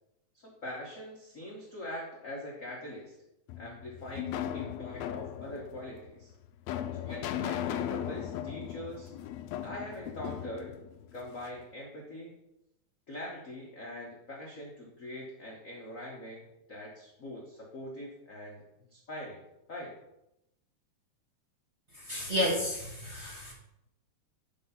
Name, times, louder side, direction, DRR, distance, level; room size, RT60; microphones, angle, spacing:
voice 1, 0.3-3.1 3.6-6.3 7.0-9.1 9.6-10.7 11.1-12.3 13.1-18.6 18.9-19.4 19.7-19.9, left 1 dB, 55° left, -3 dB, 0.9 m, -43 dB
sound 1, 3.5-11.6, left 10 dB, 80° left, 1.6 m, -37 dB
voice 2, 22.1-23.5, left 1 dB, 30° right, -5 dB, 1.5 m, -31 dB
6.8 x 5.0 x 5.6 m, 0.87 s
omnidirectional pair, 3.3 m